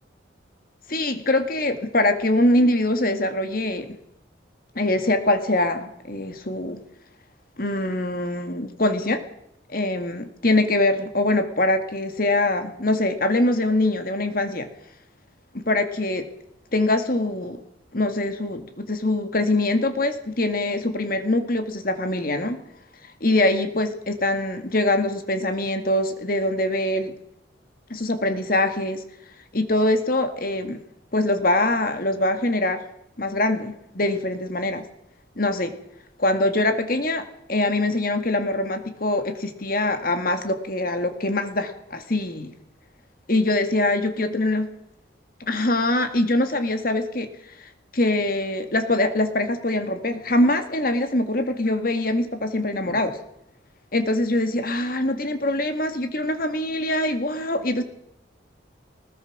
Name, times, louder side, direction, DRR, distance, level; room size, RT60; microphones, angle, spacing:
voice 1, 0.9-4.0 4.8-6.8 7.6-9.2 9.7-14.7 15.5-16.3 16.7-17.6 17.9-22.6 23.0-27.1 27.9-29.0 29.5-30.8 31.1-32.8 33.2-34.8 35.4-35.7 36.2-42.5 43.3-44.7 45.5-47.3 47.6-53.2 53.9-57.8, left 1 dB, 50° left, 8 dB, 2.0 m, -23 dB
20.5 x 20.5 x 6.1 m, 0.79 s
head